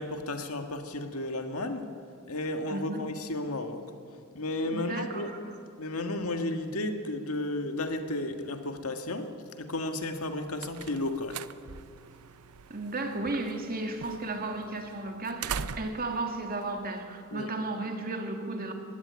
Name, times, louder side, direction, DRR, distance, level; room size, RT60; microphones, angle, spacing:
voice 1, 0.0-1.9 2.3-3.9 4.3-5.3 5.8-11.4 17.3-17.5, left 2 dB, 75° left, 6 dB, 1.8 m, -33 dB
voice 2, 2.7-3.0 4.7-5.4 12.7-18.7, right 2 dB, 45° right, 4 dB, 2.3 m, -34 dB
sound 1, 10.1-17.6, right 7 dB, 85° right, 0.6 m, -42 dB
20.5 x 16.0 x 9.5 m, 2.3 s
head